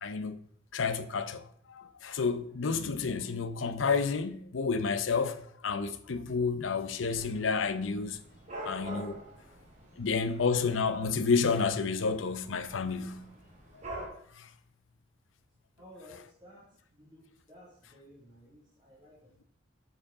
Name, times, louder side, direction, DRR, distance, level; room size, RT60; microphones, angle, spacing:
voice 1, 0.0-0.4 0.7-1.4 1.7-8.2 8.6-9.2 10.0-13.2 14.4-14.5, left 5 dB, 85° left, 0.6 m, -30 dB
Dog / Cat, 7.0-14.1, right 1 dB, 40° right, 2.2 m, -46 dB
voice 2, 15.8-19.4, left 1 dB, 25° right, 2.1 m, -55 dB
7.8 x 4.9 x 4.9 m
head